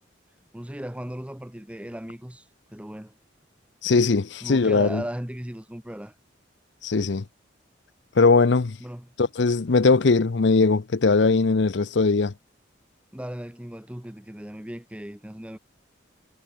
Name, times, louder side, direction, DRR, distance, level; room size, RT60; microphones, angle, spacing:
voice 1, 0.5-3.1 4.4-6.1 8.8-9.1 13.1-15.6, equal, 5° right, 0.9 m, -37 dB
voice 2, 3.8-5.0 6.8-7.2 8.2-8.8 9.2-12.3, left 4 dB, 65° left, 0.6 m, -20 dB
head